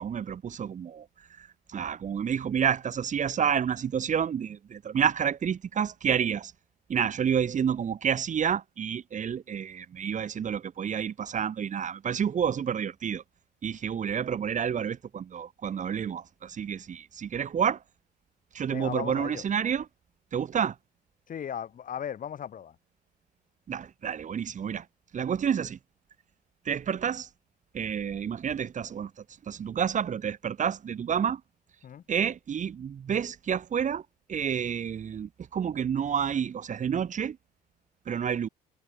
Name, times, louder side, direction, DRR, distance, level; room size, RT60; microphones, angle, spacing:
voice 1, 0.0-6.5 6.9-13.2 13.6-17.8 18.5-19.9 20.3-20.8 23.7-24.9 25.1-25.8 26.7-27.3 27.7-31.4 32.1-37.4 38.1-38.5, right 8 dB, 40° right, 3.6 m, -29 dB
voice 2, 18.7-19.4 21.3-22.8 31.8-32.0, left 9 dB, 40° left, 5.9 m, -36 dB
figure-of-eight pair, 55°, 20 cm